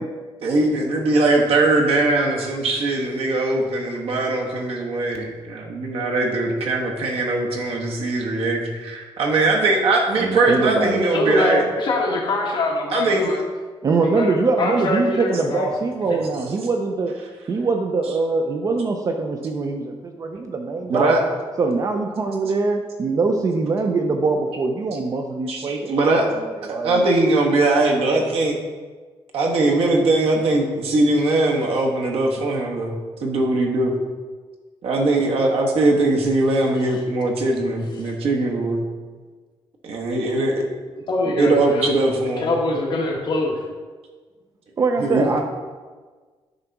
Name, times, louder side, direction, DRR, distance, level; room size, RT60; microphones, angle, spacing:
voice 1, 0.4-11.6 12.9-13.4 20.9-21.2 25.5-26.3 26.8-28.6 29.3-33.0 33.2-33.9 34.8-38.8 39.8-40.6 41.4-42.5 45.0-45.3, right 2 dB, 70° right, 0 dB, 1.4 m, -20 dB
voice 2, 10.2-11.1 13.8-17.2 17.5-21.2 21.6-27.0 44.8-45.4, right 3 dB, 35° right, 4 dB, 0.5 m, -23 dB
voice 3, 11.1-13.4 14.0-15.7 16.1-16.2 41.1-41.9 42.4-43.6, left 2 dB, 50° left, -2 dB, 1.8 m, -23 dB
9.5 x 4.0 x 5.9 m, 1.4 s
wide cardioid pair, 175°, 10 cm